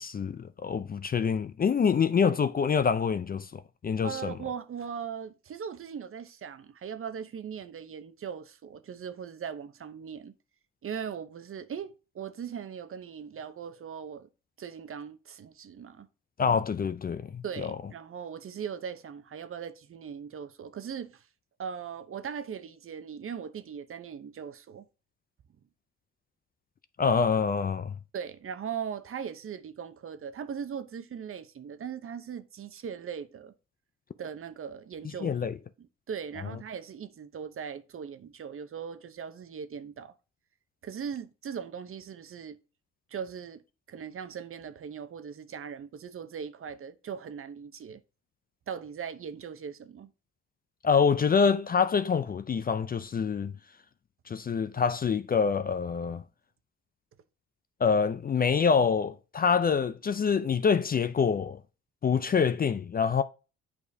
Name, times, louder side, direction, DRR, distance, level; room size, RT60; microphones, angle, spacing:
voice 1, 0.0-4.3 16.4-17.8 27.0-28.0 35.2-35.5 36.4-36.6 50.8-53.5 54.3-56.2 57.8-61.6 62.0-63.2, left 6 dB, 30° left, 0.4 m, -26 dB
voice 2, 4.0-10.3 10.8-14.3 14.6-16.1 17.4-21.3 21.6-24.8 28.1-33.5 34.2-35.3 36.1-40.1 40.8-42.6 43.1-43.6 43.9-48.0 48.7-50.1, right 7 dB, 45° right, 0.8 m, -39 dB
8.5 x 4.9 x 2.7 m
cardioid pair, 90°, 30 cm